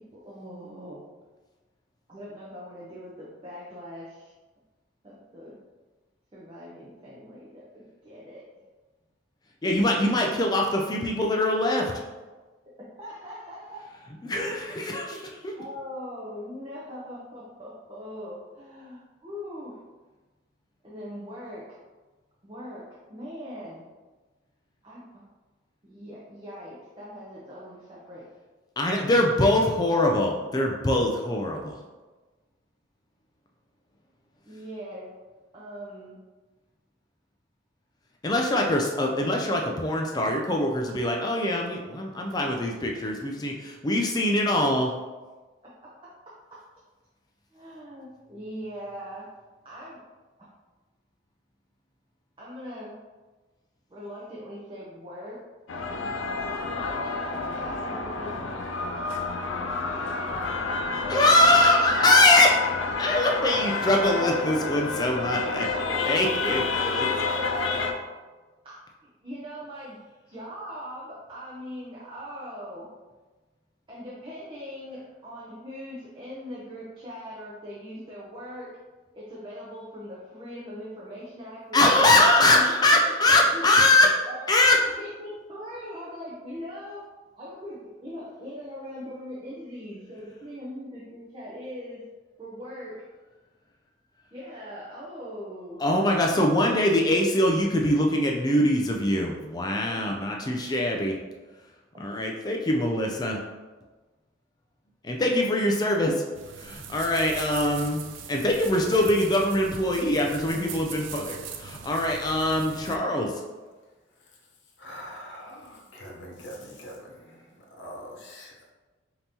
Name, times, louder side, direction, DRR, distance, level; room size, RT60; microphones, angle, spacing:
voice 1, 0.2-1.0 2.1-4.3 5.0-5.6 6.3-8.4 12.7-13.9 14.2-14.5 14.8-15.2 15.5-19.8 20.8-21.8 22.4-23.8 24.8-25.3 25.8-28.2 34.5-35.1 35.5-36.2 45.6-45.7 46.0-46.1 47.5-49.3 49.6-50.0 50.4-50.5 52.4-52.9 53.9-55.4 55.7-55.9 56.7-58.6 59.0-60.6 66.8-67.9 68.6-70.0 70.3-72.9 73.9-78.7 79.1-83.7 84.2-87.1 87.4-92.0 92.4-93.0 94.3-95.8 99.9-100.1, equal, 25° right, -7 dB, 0.6 m, -41 dB
voice 2, 9.6-11.9 14.2-15.5 28.8-31.8 38.2-44.9 61.1-62.6 63.0-65.7 66.0-67.1 81.7-84.2 84.5-84.8 95.8-101.2 102.0-103.4 105.0-106.2 106.6-108.0 108.3-113.4, left 1 dB, 20° left, 1 dB, 0.3 m, -23 dB
sound 1, 55.7-67.9, left 4 dB, 85° left, 0.5 m, -29 dB
sound 2, 106.3-113.0, right 7 dB, 85° right, 0.4 m, -41 dB
voice 3, 114.1-114.4 114.8-118.7, equal, 70° left, -1 dB, 0.8 m, -43 dB
5.3 x 2.9 x 2.8 m, 1.3 s
head